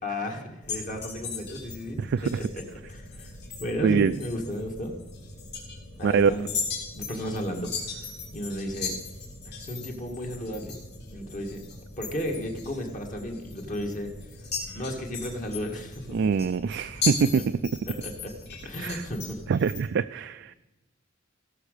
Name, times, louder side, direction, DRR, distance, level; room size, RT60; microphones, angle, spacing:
voice 1, 0.0-3.3 3.6-5.0 6.0-6.5 6.9-8.0 8.3-8.9 9.5-10.7 11.1-11.6 12.0-14.1 14.7-16.3 17.0-17.1 17.9-18.3 18.6-19.4, equal, 40° left, 2 dB, 1.8 m, -34 dB
sound 1, 0.6-19.8, left 4 dB, 60° left, 3.4 m, -38 dB
voice 2, 2.0-2.4 3.8-4.2 6.0-6.3 16.1-17.6 18.8-19.1 19.5-20.5, right 6 dB, 60° right, 11 dB, 0.3 m, -24 dB
16.5 x 6.4 x 6.6 m, 1.0 s
head